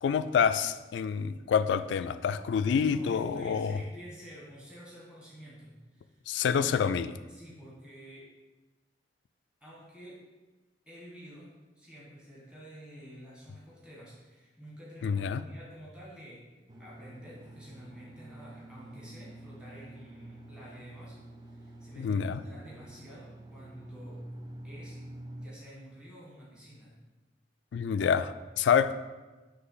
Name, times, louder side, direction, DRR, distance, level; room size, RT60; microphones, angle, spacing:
voice 1, 0.0-3.8 6.3-7.1 15.0-15.4 22.0-22.4 27.7-28.9, left 7 dB, 80° left, 12 dB, 0.3 m, -27 dB
voice 2, 2.8-6.2 6.5-6.9 7.3-8.3 9.6-10.2 10.8-11.5 11.7-16.4 16.7-21.2 21.5-24.2 24.6-25.0 25.4-26.9, equal, 5° right, -7 dB, 1.7 m, -49 dB
sound 1, 16.7-25.5, right 1 dB, 25° right, 0.5 m, -47 dB
5.9 x 3.3 x 5.6 m, 1.2 s
head